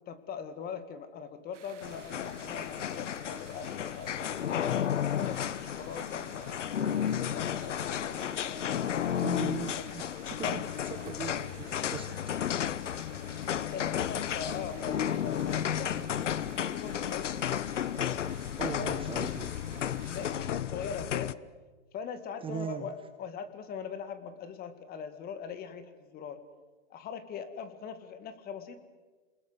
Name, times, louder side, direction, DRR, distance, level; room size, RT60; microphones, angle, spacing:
voice 1, 0.1-4.6 5.1-9.0 9.8-9.9 10.4-10.6 13.7-16.5 16.7-17.3 18.8-19.0 20.0-21.4 21.9-26.4 26.9-28.8, left 6 dB, 25° left, 11 dB, 2.1 m, -41 dB
sound 1, 1.5-20.3, right 7 dB, 90° right, 2.6 m, -54 dB
sound 2, 1.8-21.3, left 9 dB, 85° left, 1.0 m, -33 dB
voice 2, 9.2-12.2 18.6-19.5 22.4-22.9, right 6 dB, 15° right, 8 dB, 1.1 m, -39 dB
29.0 x 20.5 x 8.0 m, 1.3 s
hypercardioid pair, 135°, 35 cm